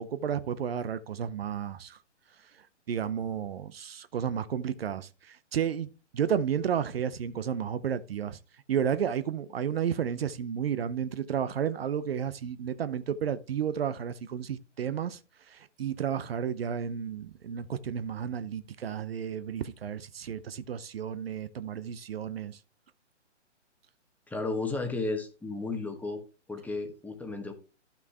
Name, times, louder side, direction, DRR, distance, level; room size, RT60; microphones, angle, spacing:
voice 1, 0.0-2.0 2.9-8.4 8.7-15.2 15.5-22.6, right 8 dB, 55° right, 0.8 m, -32 dB
voice 2, 24.3-26.2 26.5-27.5, left 3 dB, 5° left, 1.2 m, -33 dB
12.5 x 5.9 x 3.4 m
figure-of-eight pair, 135°, 36 cm